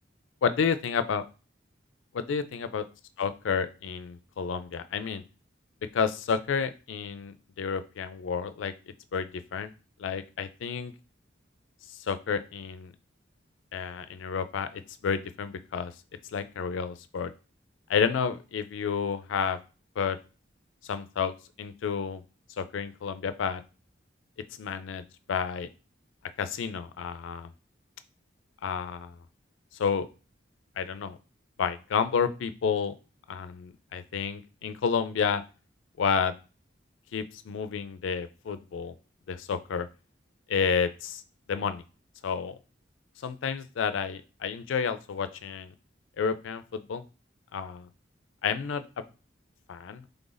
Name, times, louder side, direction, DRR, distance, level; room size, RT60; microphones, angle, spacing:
voice 1, 0.4-1.2 2.1-2.8 3.2-5.2 5.9-8.7 9.1-9.7 10.0-10.9 11.9-12.9 13.7-15.9 16.3-17.3 17.9-19.6 20.0-20.2 20.8-21.3 21.6-22.2 22.6-23.6 24.6-25.0 25.3-25.7 26.4-27.5 28.6-29.2 29.7-30.1 30.8-31.2 31.6-33.0 33.3-35.4 36.0-36.3 37.1-38.9 39.3-39.9 40.5-41.2 41.5-41.8 42.2-42.6 43.2-45.7 46.2-47.0 47.5-47.9 48.4-49.0 49.7-50.0, left 6 dB, 90° left, 12 dB, 0.4 m, -30 dB
3.4 x 2.5 x 3.9 m, 0.34 s
head